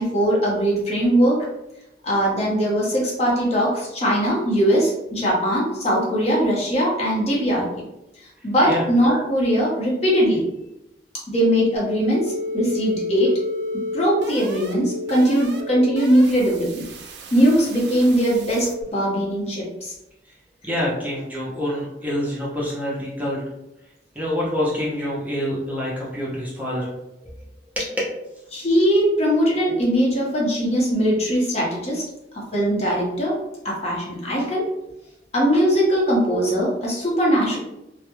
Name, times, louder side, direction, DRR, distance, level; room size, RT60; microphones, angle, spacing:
voice 1, 0.0-1.5 2.0-7.7 8.4-10.5 11.3-13.3 13.9-16.9 17.3-19.9 28.5-32.0 32.3-33.4 33.6-34.7 35.3-37.6, equal, 35° left, -4 dB, 0.7 m, -20 dB
sound 1, 11.8-18.8, left 1 dB, 65° right, 0.4 m, -32 dB
voice 2, 20.6-23.4 24.2-26.9 27.2-27.3 27.8-27.9, left 1 dB, 10° right, -6 dB, 0.5 m, -26 dB
2.2 x 2.0 x 2.9 m, 0.91 s
head